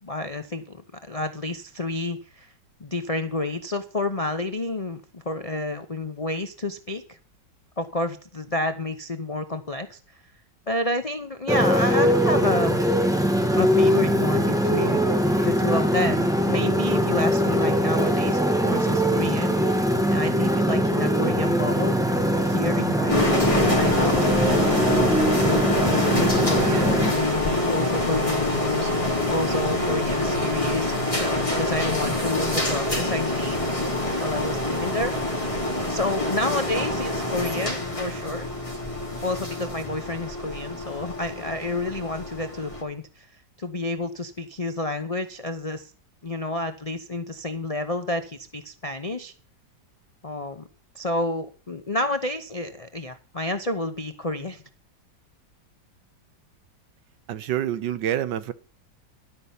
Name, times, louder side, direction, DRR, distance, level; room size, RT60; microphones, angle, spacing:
voice 1, 0.0-2.5 2.8-7.2 7.8-10.2 10.7-12.8 13.5-15.0 15.4-19.6 20.1-24.8 25.4-30.9 31.2-33.6 34.2-35.1 35.9-38.5 39.2-43.3 43.6-45.9 46.2-49.3 50.2-50.6 50.9-54.6, left 2 dB, 50° left, 0.4 m, -30 dB
Motorcycle, 11.5-27.1, equal, ahead, 1.1 m, -22 dB
sound 1, 23.1-42.8, left 1 dB, 15° left, 2.9 m, -25 dB
voice 2, 57.3-58.5, right 11 dB, 75° right, 1.4 m, -27 dB
12.0 x 5.6 x 8.1 m
omnidirectional pair, 2.0 m